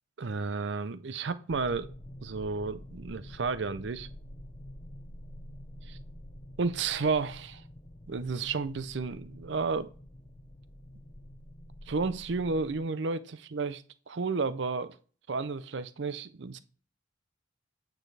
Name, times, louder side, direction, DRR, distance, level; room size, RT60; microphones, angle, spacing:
voice 1, 0.2-1.9 2.2-4.1 5.9-6.0 6.6-7.6 8.1-9.9 11.9-15.0 15.3-16.6, right 4 dB, 65° right, 0.6 m, -32 dB
sound 1, 1.5-12.7, left 1 dB, 25° left, 0.6 m, -47 dB
8.9 x 6.2 x 3.3 m
head